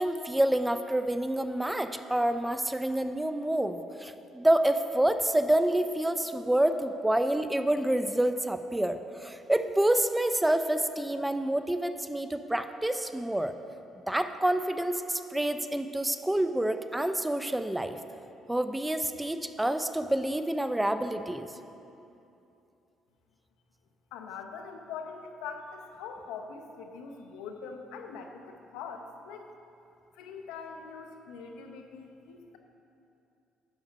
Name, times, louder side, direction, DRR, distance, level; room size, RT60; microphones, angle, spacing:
voice 1, 0.0-13.5 14.1-18.0 18.5-21.5, right 1 dB, 10° right, 9 dB, 0.5 m, -28 dB
voice 2, 24.1-29.5 30.1-32.6, left 5 dB, 90° left, 5 dB, 0.8 m, -43 dB
10.5 x 6.5 x 5.1 m, 2.7 s
cardioid pair, 85°, 0 cm